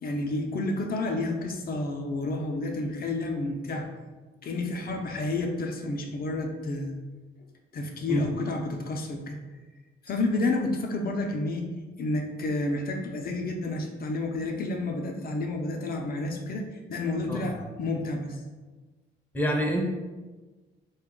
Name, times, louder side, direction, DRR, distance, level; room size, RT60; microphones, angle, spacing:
voice 1, 0.0-3.9 4.4-6.9 7.7-9.4 10.0-11.7 12.0-18.4, left 2 dB, 50° left, 2 dB, 0.6 m, -30 dB
voice 2, 19.3-19.8, equal, 10° left, 0 dB, 0.6 m, -27 dB
3.7 x 2.3 x 3.7 m, 1.3 s
cardioid pair, 90°, 20 cm